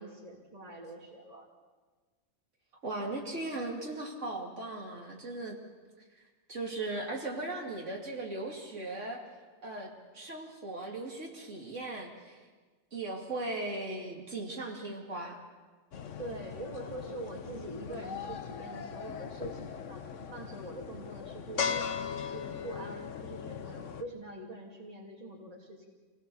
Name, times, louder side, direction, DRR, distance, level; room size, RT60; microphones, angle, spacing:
voice 1, 0.0-1.5 16.2-21.9 22.2-25.9, right 1 dB, 30° right, 0 dB, 2.6 m, -44 dB
voice 2, 2.8-5.6 6.5-9.2 9.6-12.4 12.9-15.4, right 2 dB, 75° right, 0 dB, 3.0 m, -38 dB
sound 1, 15.9-24.0, left 7 dB, 85° left, 1.3 m, -39 dB
27.0 x 17.5 x 7.1 m, 1.4 s
omnidirectional pair, 1.3 m